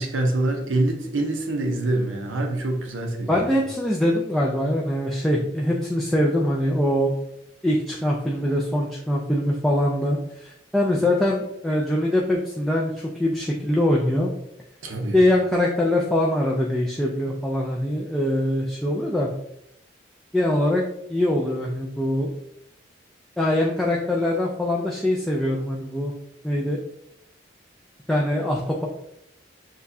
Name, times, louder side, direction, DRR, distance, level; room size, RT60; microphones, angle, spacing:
voice 1, 0.0-3.5 14.8-15.2, right 2 dB, 85° right, 3 dB, 0.7 m, -25 dB
voice 2, 3.3-7.1 7.6-14.3 15.1-19.3 20.3-20.8 21.1-22.3 23.4-26.1 26.4-26.8 28.1-28.9, left 1 dB, ahead, -3 dB, 0.3 m, -23 dB
6.5 x 2.3 x 2.7 m, 0.76 s
head